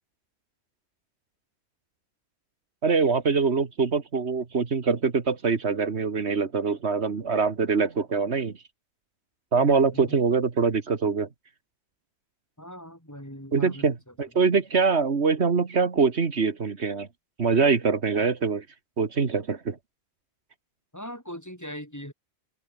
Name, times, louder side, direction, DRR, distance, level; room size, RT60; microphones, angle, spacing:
voice 1, 2.8-8.5 9.5-11.3 13.5-17.1 17.4-18.6 19.0-19.8, right 5 dB, 80° right, 2.0 m, -24 dB
voice 2, 9.6-10.2 12.6-14.3 20.9-22.1, equal, 15° left, 7.1 m, -41 dB
omnidirectional pair, 1.1 m